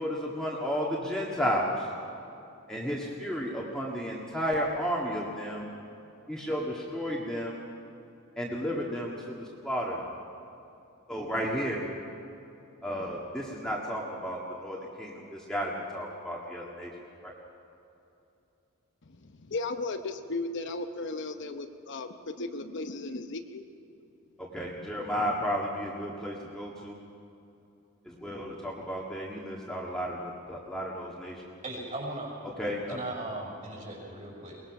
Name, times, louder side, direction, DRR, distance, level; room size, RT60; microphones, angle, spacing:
voice 1, 0.0-1.8 2.7-5.7 6.3-7.7 8.4-10.0 11.1-11.8 12.8-16.9 17.2-17.3 24.4-27.0 28.0-31.4 32.6-33.0, equal, 5° left, -4 dB, 1.9 m, -33 dB
voice 2, 19.0-23.6, left 3 dB, 55° left, 7 dB, 0.9 m, -36 dB
voice 3, 31.6-32.4 32.9-34.6, right 2 dB, 35° right, -2 dB, 5.7 m, -38 dB
22.5 x 20.0 x 6.1 m, 2.8 s
head